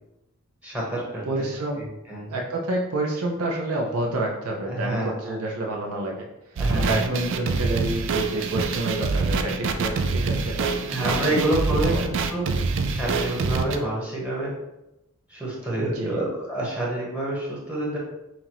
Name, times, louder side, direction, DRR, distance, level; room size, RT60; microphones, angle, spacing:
voice 1, 0.6-1.2 1.7-2.3 4.7-5.4 6.6-6.9 10.9-12.5 12.9-14.5 15.3-18.0, right 1 dB, 5° right, -5 dB, 1.1 m, -28 dB
voice 2, 1.2-1.8 2.3-6.3 6.7-10.8 11.1-11.4 11.7-12.1 15.8-16.2, right 2 dB, 90° right, -1 dB, 0.7 m, -28 dB
sound 1, 6.6-13.8, right 4 dB, 60° right, 0.4 m, -25 dB
5.6 x 2.6 x 2.9 m, 0.92 s
head